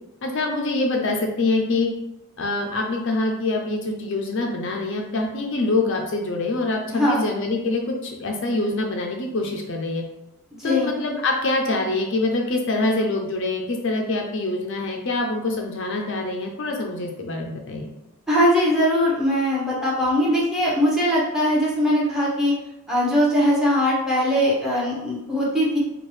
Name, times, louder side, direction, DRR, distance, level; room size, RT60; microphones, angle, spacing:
voice 1, 0.2-1.9 2.4-7.9 8.2-10.0 10.6-17.9, left 2 dB, 55° left, 1 dB, 0.5 m, -25 dB
voice 2, 6.9-7.3 10.6-10.9 18.3-22.5 22.9-25.8, equal, ahead, -5 dB, 0.9 m, -20 dB
4.4 x 2.3 x 3.2 m, 0.92 s
head